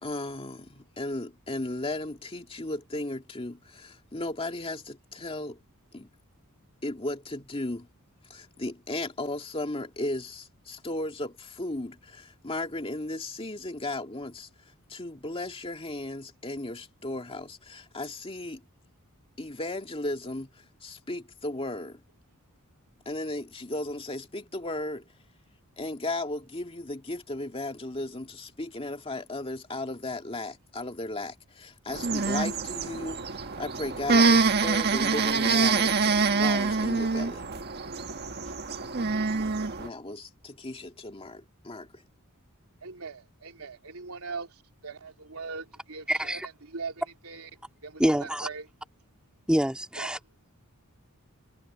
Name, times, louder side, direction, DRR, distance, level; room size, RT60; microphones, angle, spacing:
voice 1, 0.0-5.6 5.9-6.1 6.8-7.9 8.3-18.6 19.4-22.0 23.1-25.0 25.8-36.0 36.3-37.4 39.8-42.0, left 2 dB, 25° left, 2.1 m, -35 dB
sound 1, 31.9-39.9, right 4 dB, 50° right, 1.6 m, -25 dB
voice 2, 42.8-47.5 47.8-48.7 50.0-50.1, right 4 dB, 75° right, 3.7 m, -40 dB
voice 3, 46.1-46.5 48.0-48.5 49.5-50.2, equal, 5° right, 2.0 m, -26 dB
head